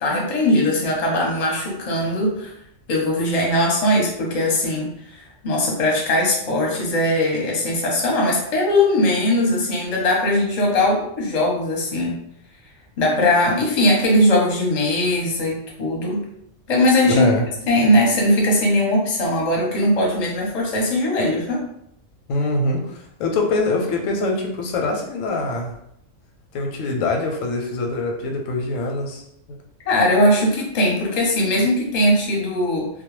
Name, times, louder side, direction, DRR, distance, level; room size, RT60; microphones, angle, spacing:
voice 1, 0.0-2.5 2.9-4.9 5.4-12.2 13.0-16.2 16.7-17.3 17.7-21.6 29.9-32.9, left 1 dB, 40° left, -2 dB, 0.6 m, -20 dB
voice 2, 17.0-17.5 22.3-25.7 26.5-29.2, left 2 dB, 90° left, 2 dB, 1.0 m, -23 dB
2.2 x 2.1 x 3.0 m, 0.75 s
omnidirectional pair, 1.3 m